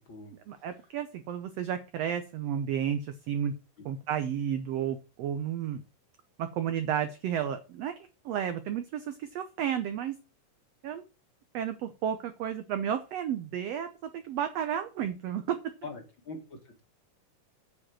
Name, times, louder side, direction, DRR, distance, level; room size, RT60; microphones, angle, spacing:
voice 1, 0.5-3.5 3.8-5.8 6.4-7.9 8.2-10.2 10.8-11.1 11.5-15.6, right 9 dB, 80° right, 10 dB, 1.4 m, -32 dB
voice 2, 15.8-16.8, left 3 dB, 40° left, 3 dB, 2.3 m, -43 dB
8.5 x 5.2 x 7.6 m, 0.32 s
omnidirectional pair, 3.8 m